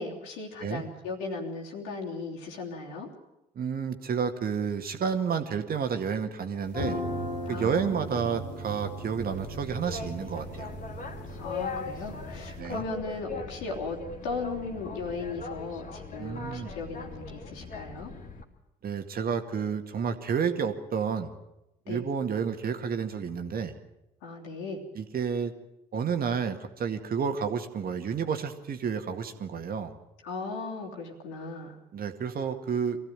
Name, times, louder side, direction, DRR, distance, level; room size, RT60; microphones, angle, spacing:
voice 1, 0.0-3.1 7.5-8.3 11.4-14.0 14.2-18.1 21.9-22.0 24.2-24.8 30.2-31.8, left 3 dB, 70° left, -1 dB, 3.3 m, -37 dB
voice 2, 3.6-7.0 7.5-10.8 12.6-12.8 16.2-16.7 18.8-21.3 21.9-23.7 24.9-25.5 25.9-29.9 31.9-33.0, right 6 dB, 45° right, 7 dB, 2.0 m, -30 dB
sound 1, 6.6-12.6, right 1 dB, 90° left, 3.7 m, -37 dB
Boat Water vehicle, 9.2-18.4, left 4 dB, 40° left, 2.8 m, -40 dB
23.5 x 15.5 x 9.0 m, 0.91 s
figure-of-eight pair, 45°, 21 cm